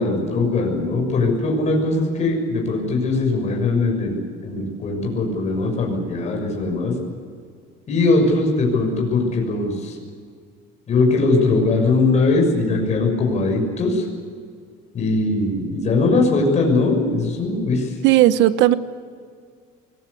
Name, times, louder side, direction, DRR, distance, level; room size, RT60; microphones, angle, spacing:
voice 1, 0.0-6.9 7.9-10.0 10.9-14.1 14.9-17.9, left 3 dB, 35° left, 1 dB, 6.6 m, -20 dB
voice 2, 18.0-18.7, right 14 dB, 65° right, 13 dB, 1.0 m, -15 dB
24.5 x 21.5 x 8.4 m, 2.1 s
cardioid pair, 145°, 20 cm